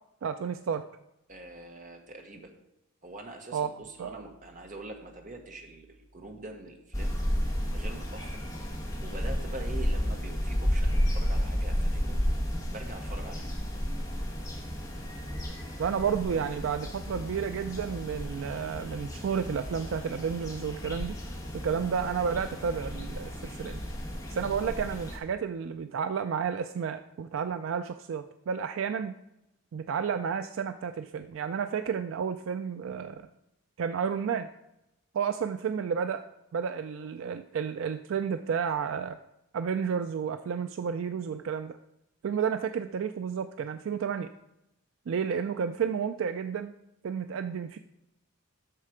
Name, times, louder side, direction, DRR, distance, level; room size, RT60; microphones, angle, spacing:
voice 1, 0.2-0.8 3.5-3.7 4.0-4.2 15.8-21.4 21.6-23.8 24.3-29.1 29.7-33.2 33.8-34.5 35.1-36.2 36.5-39.2 39.5-41.8 42.2-44.3 45.1-46.7 47.0-47.8, right 7 dB, 65° right, 9 dB, 0.3 m, -31 dB
voice 2, 1.3-2.5 3.0-7.2 7.4-8.4 9.0-12.2 12.7-13.5, right 2 dB, 35° right, 3 dB, 1.1 m, -44 dB
sound 1, 6.9-25.2, equal, 15° left, 1.5 m, -32 dB
7.6 x 6.6 x 4.9 m, 0.89 s
head